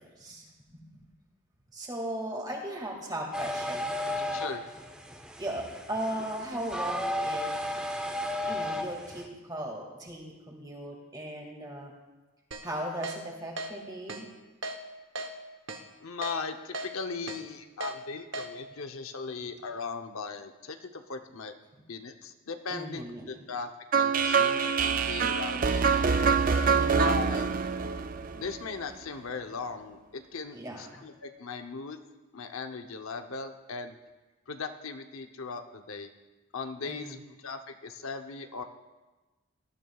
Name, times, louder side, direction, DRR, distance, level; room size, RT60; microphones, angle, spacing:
voice 1, 0.2-1.0 1.7-4.4 5.4-7.7 8.5-11.9 12.6-14.3 22.7-23.3 26.7-27.1 30.5-31.1 36.8-37.2, right 1 dB, 20° right, 0 dB, 2.1 m, -37 dB
sound 1, 3.3-9.3, left 1 dB, 5° right, 0.7 m, -34 dB
voice 2, 4.3-4.7 16.0-21.5 21.9-26.1 26.9-27.5 28.3-32.0 32.3-34.0 34.5-36.1 36.5-37.2 37.4-38.6, left 4 dB, 80° left, 6 dB, 0.8 m, -38 dB
Keyboard (musical), 12.5-12.6 13.0-13.2 13.6-13.7 14.1-14.2 14.6-14.8 15.2-15.3 15.7-15.8 16.2-16.4 16.7-16.9 17.3-17.4 17.8-17.9 18.3-18.5, right 2 dB, 60° right, 0.9 m, -36 dB
sound 2, 23.9-28.9, right 5 dB, 40° right, 0.4 m, -25 dB
19.0 x 12.0 x 2.4 m, 1.2 s
head